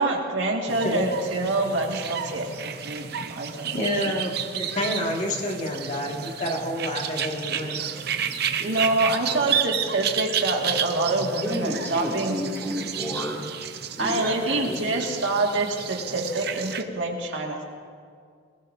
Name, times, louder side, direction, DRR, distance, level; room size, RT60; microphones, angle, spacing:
voice 1, 0.0-4.2 8.6-12.4 14.0-17.6, right 2 dB, 80° right, 0 dB, 1.9 m, -26 dB
sound 1, 0.7-16.8, right 8 dB, 55° right, 0.7 m, -31 dB
voice 2, 3.7-7.8, left 1 dB, 40° left, -1 dB, 1.9 m, -28 dB
voice 3, 7.6-8.9 9.3-9.6 11.4-13.4 14.0-15.3, equal, 15° left, -5 dB, 3.3 m, -33 dB
20.0 x 20.0 x 2.7 m, 2.1 s
head